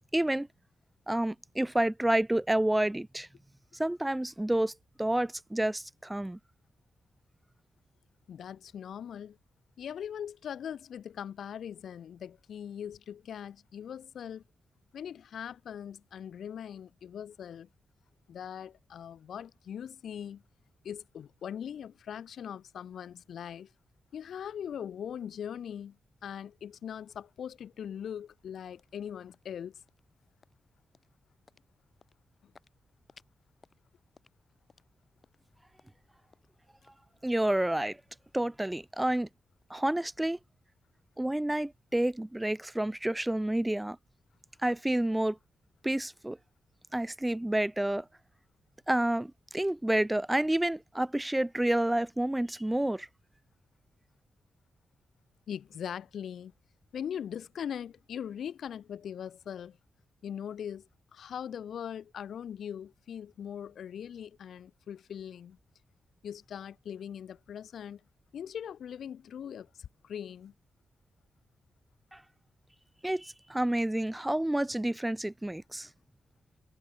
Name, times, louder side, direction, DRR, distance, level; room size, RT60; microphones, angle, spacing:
voice 1, 0.1-0.5 1.1-3.3 3.8-4.7 5.0-6.4 37.2-38.0 38.3-39.3 39.7-40.4 41.2-44.0 44.6-45.4 45.8-46.4 46.9-48.1 48.9-53.1 72.1-72.2 73.0-75.9, right 1 dB, 10° right, 0.4 m, -29 dB
voice 2, 8.3-9.4 9.8-14.4 14.9-17.7 18.3-20.4 20.8-23.7 24.1-26.0 26.2-29.8 32.4-32.5 55.5-56.5 56.9-59.8 60.2-65.6 66.2-68.0 68.3-70.5, left 8 dB, 85° left, 1.4 m, -41 dB
sound 1, 28.1-40.2, left 4 dB, 40° left, 6.4 m, -67 dB
wide cardioid pair, 105°, 0 cm